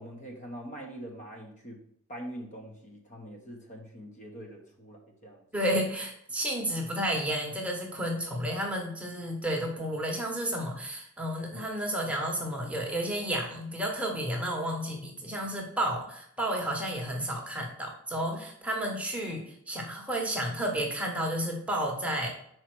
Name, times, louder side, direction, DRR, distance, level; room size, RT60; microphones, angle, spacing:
voice 1, 0.0-1.8 2.1-5.4, equal, 35° left, 1 dB, 1.2 m, -43 dB
voice 2, 5.5-22.3, right 1 dB, 5° right, -1 dB, 1.2 m, -31 dB
5.7 x 4.5 x 6.1 m, 0.70 s
head